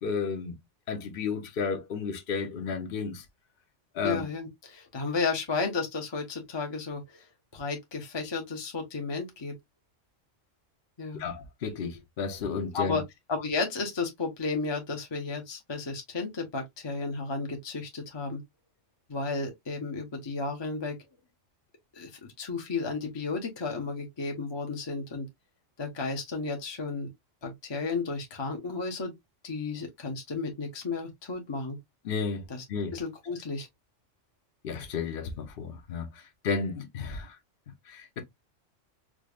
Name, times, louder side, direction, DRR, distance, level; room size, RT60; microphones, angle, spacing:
voice 1, 0.0-0.5 0.9-3.2 3.9-4.2 11.1-13.0 32.0-32.4 32.7-33.0 34.6-37.4 37.9-38.2, left 5 dB, 50° left, 0.9 m, -32 dB
voice 2, 4.0-7.2 7.5-9.5 11.0-11.2 12.7-13.0 13.3-18.4 19.1-21.0 21.9-22.1 22.4-25.3 25.8-27.1 27.4-29.1 29.4-31.8 32.5-32.6 32.9-33.7, left 4 dB, 25° left, 0.8 m, -33 dB
5.0 x 2.2 x 2.4 m
omnidirectional pair, 1.3 m